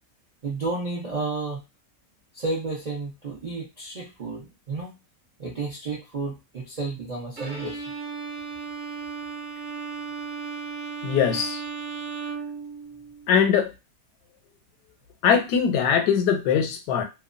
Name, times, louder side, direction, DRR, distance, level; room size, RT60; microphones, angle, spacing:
voice 1, 0.4-1.6 2.3-4.9 5.4-7.8, right 3 dB, 80° right, -4 dB, 0.3 m, -31 dB
Bowed string instrument, 7.4-13.3, right 5 dB, 60° right, 1.0 m, -35 dB
voice 2, 11.0-11.6 13.3-13.7 15.2-17.0, left 7 dB, 85° left, 6 dB, 1.2 m, -21 dB
2.8 x 2.1 x 2.4 m, 0.26 s
omnidirectional pair, 1.7 m